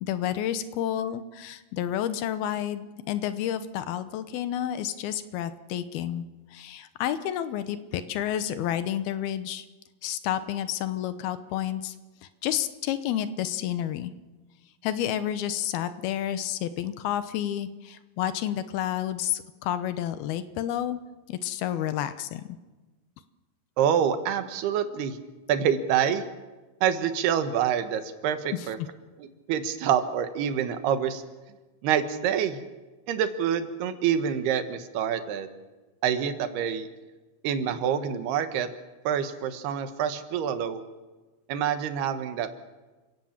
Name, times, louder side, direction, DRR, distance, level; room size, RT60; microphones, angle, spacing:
voice 1, 0.0-9.7 10.0-12.0 12.4-14.1 14.8-21.0 21.3-22.6 28.5-28.7, left 11 dB, 75° left, 12 dB, 2.8 m, -30 dB
voice 2, 23.8-25.2 25.5-26.2 26.8-28.8 29.2-31.2 31.8-32.6 33.1-35.5 36.0-36.9 37.4-38.7 39.0-40.8 41.5-42.5, right 8 dB, 80° right, 9 dB, 3.4 m, -26 dB
28.5 x 17.5 x 7.3 m, 1.2 s
omnidirectional pair, 4.5 m